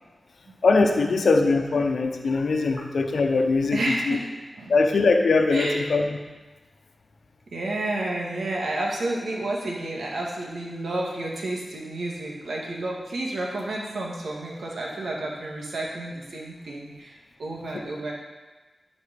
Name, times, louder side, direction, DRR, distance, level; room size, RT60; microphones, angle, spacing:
voice 1, 0.6-3.8 4.1-4.2 4.7-6.2, left 3 dB, 80° left, 4 dB, 0.9 m, -21 dB
voice 2, 3.7-4.2 4.6-4.8 5.5-5.8 7.5-18.1, right 2 dB, 80° right, -2 dB, 1.9 m, -30 dB
11.5 x 5.3 x 5.3 m, 1.2 s
wide cardioid pair, 65°, 0 cm